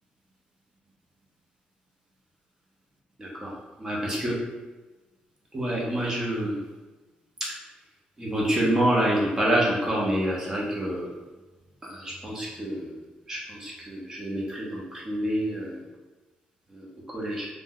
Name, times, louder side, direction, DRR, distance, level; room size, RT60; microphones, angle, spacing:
voice 1, 3.2-3.5 3.8-4.3 5.5-6.5 8.2-11.0 11.9-12.9 13.3-15.7 16.8-17.5, right 1 dB, 20° right, -4 dB, 0.6 m, -27 dB
2.6 x 2.0 x 3.7 m, 1.2 s
cardioid pair, 155°, 3 cm